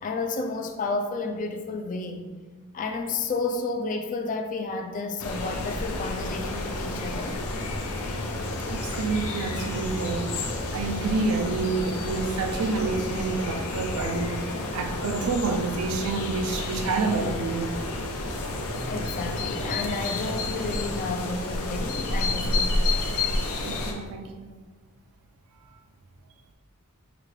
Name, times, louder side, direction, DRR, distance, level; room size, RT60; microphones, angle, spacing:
voice 1, 0.0-2.2 2.7-7.4 18.9-23.0, left 3 dB, 35° left, 0.3 m, -31 dB
sound 1, 5.2-23.9, left 2 dB, 80° left, 0.6 m, -30 dB
voice 2, 8.7-10.3 10.7-14.4 14.7-17.8 23.6-24.6, right 4 dB, 70° right, 0.4 m, -28 dB
5.0 x 2.3 x 3.1 m
head